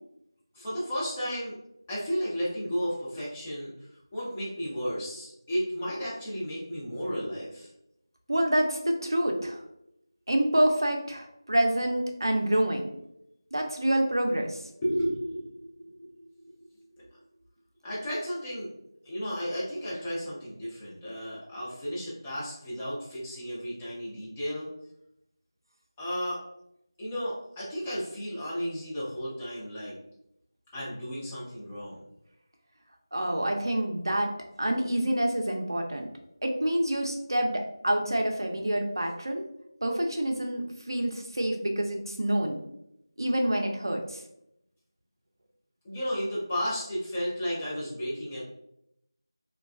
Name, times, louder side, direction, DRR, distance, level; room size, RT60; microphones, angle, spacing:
voice 1, 0.5-1.6 1.9-3.7 4.1-7.7 14.8-17.0 17.8-18.7 19.0-24.7 26.0-26.4 27.0-29.9 30.7-32.0 45.8-48.4, equal, 10° left, -9 dB, 0.5 m, -33 dB
voice 2, 8.3-9.6 10.3-12.9 13.5-14.6 33.1-34.3 34.6-36.1 36.4-39.4 39.8-42.6 43.2-44.2, right 1 dB, 60° right, 2 dB, 0.5 m, -27 dB
3.0 x 2.3 x 2.4 m, 0.80 s
figure-of-eight pair, 170°, 2 cm